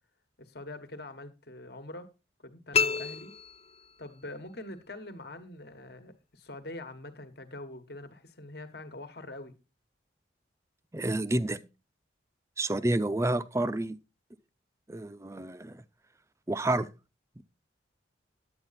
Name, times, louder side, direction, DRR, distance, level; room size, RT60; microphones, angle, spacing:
voice 1, 0.4-2.1 2.4-3.3 4.0-9.5, left 2 dB, 60° left, 1.4 m, -44 dB
sound 1, 2.7-4.3, left 6 dB, 35° left, 0.5 m, -30 dB
voice 2, 10.9-11.6 12.6-14.0 14.9-15.8 16.5-16.9 17.4-17.5, right 1 dB, 15° right, 0.5 m, -29 dB
10.5 x 8.7 x 4.1 m
head